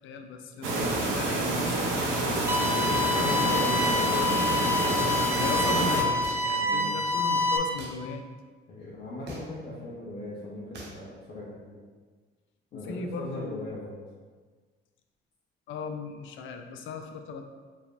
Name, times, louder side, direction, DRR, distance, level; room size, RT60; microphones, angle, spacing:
voice 1, 0.0-4.1 5.4-8.2 12.7-13.7 15.7-17.4, left 4 dB, 75° left, 5 dB, 0.5 m, -38 dB
voice 2, 0.6-1.0 2.7-4.6 6.6-7.0 8.7-11.8 12.7-13.9, left 1 dB, 55° left, -9 dB, 1.0 m, -39 dB
sound 1, 0.6-6.0, right 2 dB, 90° right, 0.8 m, -27 dB
sound 2, 2.5-7.6, left 2 dB, 10° right, 0.4 m, -27 dB
sound 3, 6.2-6.7 7.8-8.0 9.3-9.6 10.7-11.0, right 1 dB, 60° right, 0.9 m, -42 dB
4.8 x 3.4 x 2.6 m, 1.5 s
cardioid pair, 90°, 20 cm